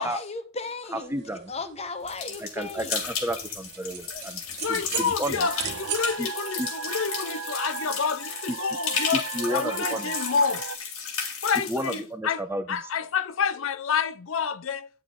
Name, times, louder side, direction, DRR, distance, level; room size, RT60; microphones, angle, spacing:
voice 1, 0.0-2.9 4.1-4.2, left 3 dB, 30° left, 1.0 m, -36 dB
voice 2, 0.9-1.5 2.4-4.4 4.7-5.5 6.2-6.3 6.6-6.7 9.1-10.1 11.7-12.8, right 1 dB, 10° right, 0.9 m, -32 dB
sound 1, 1.0-6.2, right 9 dB, 50° right, 1.3 m, -38 dB
sound 2, 2.1-12.0, left 6 dB, 90° left, 2.8 m, -34 dB
voice 3, 4.6-9.2 9.5-10.6 11.4-12.4 12.7-15.0, left 6 dB, 70° left, 0.5 m, -28 dB
sound 3, 5.4-10.8, right 6 dB, 80° right, 0.6 m, -36 dB
10.5 x 6.8 x 3.7 m
head